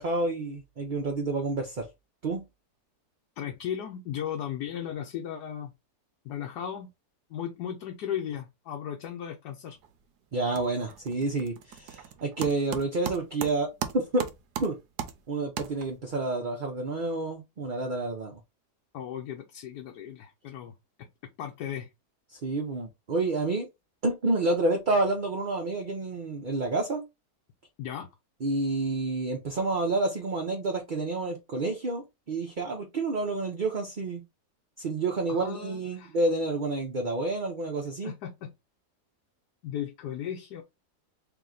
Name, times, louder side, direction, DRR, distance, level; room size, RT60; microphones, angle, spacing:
voice 1, 0.0-1.9 2.2-2.5 10.3-14.3 14.6-14.8 15.3-18.4 22.3-23.7 24.0-27.0 28.4-34.2 34.8-38.1, right 2 dB, 45° right, 0.6 m, -29 dB
voice 2, 3.4-5.7 6.2-6.9 7.3-9.8 18.9-20.7 21.0-21.1 21.4-21.9 27.8-28.1 35.3-36.1 38.0-38.5 39.6-40.6, left 9 dB, 80° left, 1.2 m, -36 dB
sound 1, 9.7-10.1 10.3-16.2, right 9 dB, 85° right, 1.2 m, -38 dB
3.4 x 3.0 x 3.7 m
omnidirectional pair, 1.7 m